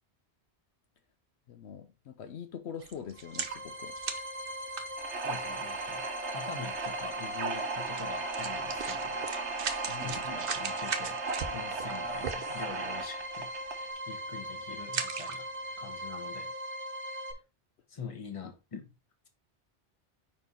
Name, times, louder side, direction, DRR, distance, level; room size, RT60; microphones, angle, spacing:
voice 1, 1.5-4.0 9.9-10.2, left 8 dB, 75° left, 0.9 m, -43 dB
sound 1, 2.8-5.5 6.3-6.4 6.7-6.8 7.9-8.0 8.3-12.9 13.4-13.6 13.9-14.2 14.8-15.7 16.2-16.3, right 6 dB, 55° right, 0.9 m, -38 dB
sound 2, 3.1-17.3, equal, 15° right, 0.6 m, -40 dB
sound 3, 5.0-13.9, right 4 dB, 80° right, 1.3 m, -37 dB
voice 2, 5.2-6.0 6.3-9.2 10.0-11.2 11.5-13.5 14.1-15.5 15.8-16.5 17.9-18.9, left 6 dB, 30° left, 1.1 m, -44 dB
5.2 x 4.5 x 4.2 m
omnidirectional pair, 1.1 m